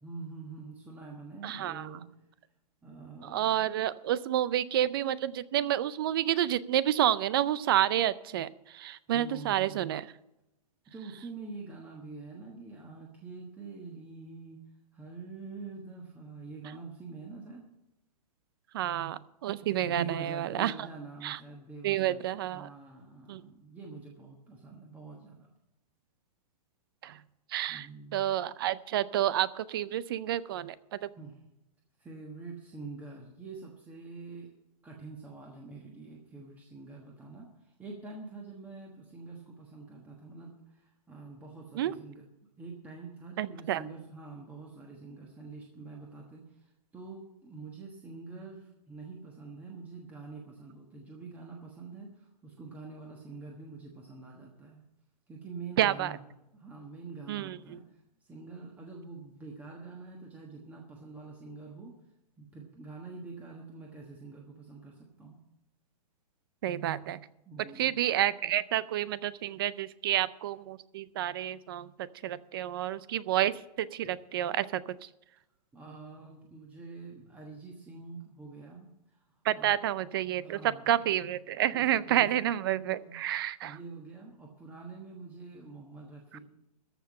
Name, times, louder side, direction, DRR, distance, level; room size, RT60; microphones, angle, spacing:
voice 1, 0.0-2.0 2.8-3.7 9.1-10.0 10.9-14.6 14.9-17.6 19.8-25.5 27.7-28.3 31.2-31.4 32.0-34.5 34.8-42.2 42.6-54.8 55.3-56.2 56.5-61.9 62.4-65.4 67.4-68.0 75.7-79.3 79.5-79.8 80.4-81.0 81.7-82.6 83.0-83.2 83.6-86.4, right 4 dB, 5° right, -1 dB, 1.2 m, -46 dB
voice 2, 1.4-1.9 3.2-10.1 18.7-20.7 21.2-21.4 21.8-22.7 23.3-23.4 27.0-27.2 27.5-27.9 28.1-31.1 41.7-41.9 43.4-43.8 55.8-56.1 57.3-57.8 66.6-67.3 67.8-75.1 79.4-80.6 80.9-83.8 86.3-86.4, right 12 dB, 35° right, 18 dB, 0.4 m, -29 dB
14.0 x 5.9 x 8.5 m, 0.90 s
hypercardioid pair, 160°, 21 cm